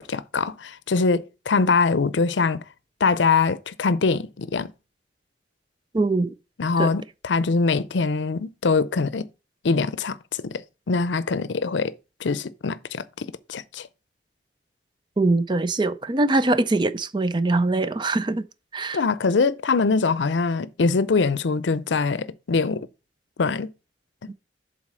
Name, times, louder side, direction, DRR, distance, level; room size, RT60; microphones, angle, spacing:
voice 1, 0.0-2.6 3.0-4.7 6.6-9.3 9.6-11.9 12.2-13.9 18.9-22.9 23.4-23.7 24.2-24.3, left 4 dB, 85° left, 0.6 m, -23 dB
voice 2, 5.9-6.3 6.8-6.9 15.2-18.5 18.7-19.0 24.3-24.4, right 2 dB, 25° right, 0.4 m, -22 dB
7.4 x 4.1 x 6.3 m
head